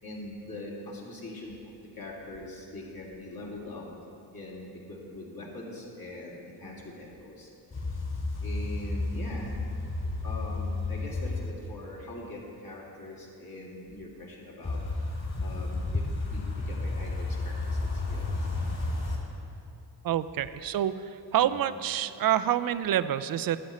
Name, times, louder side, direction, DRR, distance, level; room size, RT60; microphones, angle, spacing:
voice 1, 0.0-3.8 4.3-7.5 8.4-9.6 10.2-14.8 15.4-18.5 21.4-21.6, left 1 dB, 50° left, -4 dB, 2.5 m, -42 dB
sound 1, 7.7-11.5 14.6-19.2, left 2 dB, 35° left, 2.6 m, -32 dB
voice 2, 20.0-23.6, right 11 dB, 50° right, 14 dB, 0.5 m, -27 dB
12.0 x 9.4 x 4.2 m, 2.7 s
cardioid pair, 80°, 45 cm